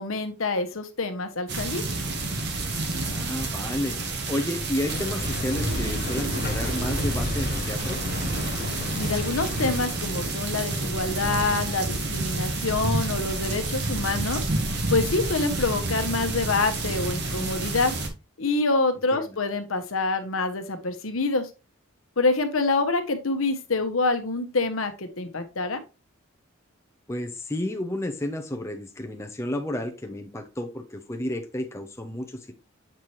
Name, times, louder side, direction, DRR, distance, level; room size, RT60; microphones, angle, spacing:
voice 1, 0.0-1.8 9.0-14.4 14.9-17.9 18.4-21.5 22.2-25.8, left 3 dB, 75° left, 8 dB, 1.1 m, -26 dB
sound 1, 1.5-18.1, right 2 dB, 55° right, 1.3 m, -29 dB
voice 2, 2.9-4.0 4.3-8.0 19.1-19.4 27.1-32.5, left 1 dB, 15° left, 4 dB, 0.7 m, -31 dB
sound 2, 4.9-9.9, left 4 dB, 45° left, 0.4 m, -35 dB
7.4 x 4.3 x 3.2 m, 0.28 s
head